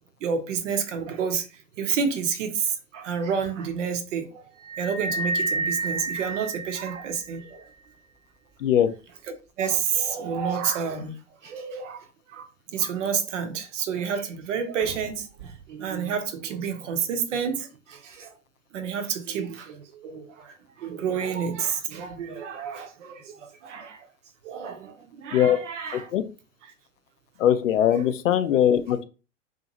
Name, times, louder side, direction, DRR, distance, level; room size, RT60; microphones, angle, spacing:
voice 1, 0.2-1.5 1.8-4.4 4.8-7.7 9.6-11.2 11.4-18.3 18.7-24.1 24.4-26.1 27.9-28.1, right 6 dB, 70° right, 0.7 m, -30 dB
sound 1, 4.6-7.3, right 2 dB, 15° right, 0.6 m, -29 dB
voice 2, 25.9-26.2 27.4-29.0, left 10 dB, 80° left, 0.5 m, -21 dB
2.7 x 2.5 x 2.8 m
figure-of-eight pair, 85°, 38 cm